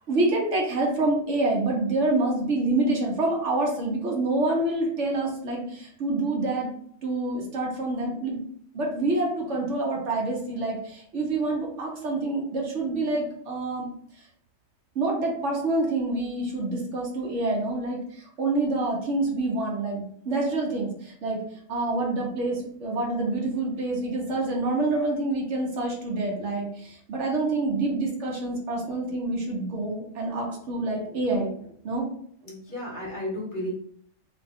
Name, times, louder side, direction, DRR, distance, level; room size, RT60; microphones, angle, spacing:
voice 1, 0.1-6.7 7.0-8.4 8.7-13.9 14.9-21.4 21.7-31.5 31.8-32.1, right 2 dB, 70° right, -1 dB, 1.1 m, -27 dB
voice 2, 32.4-33.7, equal, 45° left, -4 dB, 1.0 m, -33 dB
2.9 x 2.2 x 3.4 m, 0.62 s
omnidirectional pair, 1.3 m